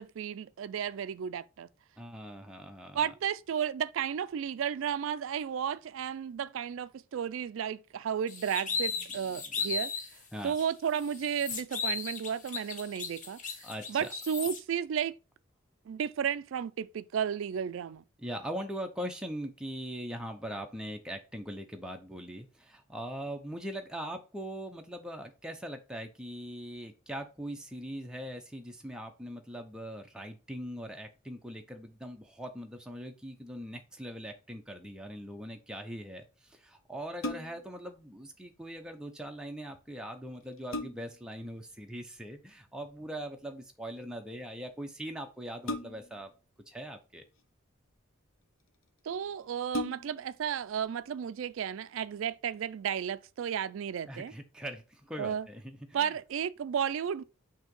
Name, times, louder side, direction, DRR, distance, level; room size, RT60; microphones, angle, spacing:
voice 1, 0.0-1.7 2.9-9.9 10.4-13.4 13.9-15.2 15.9-18.0 49.0-54.3 55.2-55.5 55.9-57.2, right 8 dB, 75° right, 0.3 m, -33 dB
voice 2, 2.0-3.1 8.7-9.5 10.3-10.6 13.6-14.1 18.2-46.3 46.7-47.2 54.1-56.1, equal, 5° right, 0.6 m, -41 dB
sound 1, 8.3-10.1 10.5-10.6 11.0-14.6, left 5 dB, 40° left, 1.0 m, -36 dB
sound 2, 37.2-37.8 39.8-39.9 40.3-41.3 42.8-43.2 45.6-46.3 47.2-47.9 48.7-48.8 49.1-49.2 49.7-50.3 50.8-50.9, left 1 dB, 80° left, 0.8 m, -38 dB
6.2 x 2.8 x 5.3 m
head